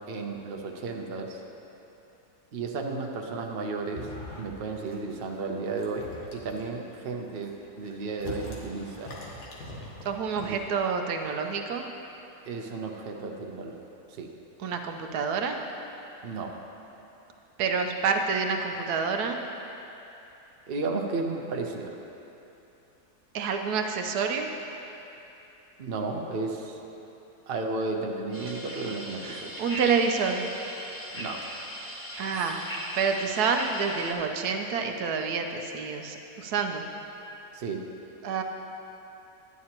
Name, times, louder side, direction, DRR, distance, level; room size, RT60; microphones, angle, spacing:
voice 1, 0.1-1.4 2.5-4.1 4.4-9.1 10.4-10.6 12.5-13.8 14.2-14.3 16.2-16.6 20.7-22.0 25.8-26.8 27.5-29.5 31.1-31.4 37.5-37.9, right 3 dB, 55° right, 1 dB, 0.6 m, -33 dB
sound 1, 3.9-4.6 4.9-5.3 5.7-6.6 7.2-10.7, left 1 dB, 75° left, 1.7 m, -42 dB
voice 2, 10.0-11.9 14.6-15.6 17.6-19.4 23.3-24.5 29.2-30.4 32.2-32.7 32.9-36.8 38.2-38.4, right 5 dB, 75° right, 4 dB, 1.1 m, -28 dB
sound 2, 28.3-34.1, equal, 10° left, 0.6 m, -38 dB
11.0 x 9.5 x 2.9 m, 2.9 s
omnidirectional pair, 1.7 m